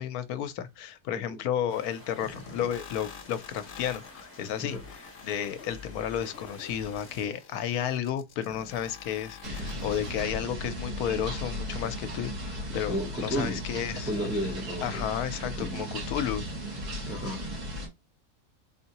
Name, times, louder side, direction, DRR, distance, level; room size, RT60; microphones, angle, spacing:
voice 1, 0.0-4.8 5.2-14.1 14.8-16.4, left 9 dB, 75° left, 1.1 m, -32 dB
voice 2, 1.1-1.4 4.6-4.8 12.9-13.6 14.1-15.0 15.4-15.9 17.1-17.4, equal, 5° right, 0.3 m, -33 dB
sound 1, 1.7-7.3, left 1 dB, 10° left, 1.3 m, -51 dB
sound 2, 2.2-10.2, left 5 dB, 60° left, 0.7 m, -46 dB
sound 3, 9.4-17.9, equal, 80° right, 2.7 m, -36 dB
4.1 x 3.6 x 2.9 m
omnidirectional pair, 1.6 m